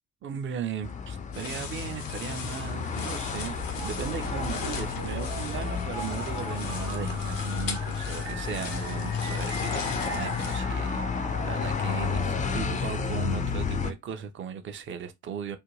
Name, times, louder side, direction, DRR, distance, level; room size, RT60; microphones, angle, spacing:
voice 1, 0.2-15.6, right 7 dB, 30° right, 0.5 m, -37 dB
sound 1, 0.8-13.9, left 6 dB, 20° left, 0.4 m, -31 dB
sound 2, 1.3-10.6, left 5 dB, 80° left, 0.6 m, -39 dB
sound 3, 3.8-13.3, right 4 dB, 70° right, 1.0 m, -41 dB
2.5 x 2.2 x 3.0 m
figure-of-eight pair, 45°, 38 cm